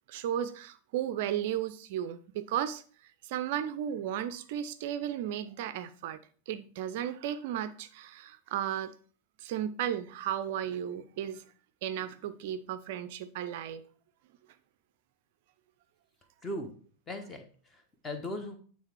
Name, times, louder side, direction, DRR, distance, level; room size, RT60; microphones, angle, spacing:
voice 1, 0.1-6.2 6.5-8.9 9.4-11.4 11.8-13.8, right 10 dB, 50° right, 0.4 m, -34 dB
voice 2, 16.4-16.8 17.1-18.6, left 1 dB, 20° left, 1.2 m, -39 dB
8.9 x 3.4 x 4.5 m
figure-of-eight pair, 90°, 0 cm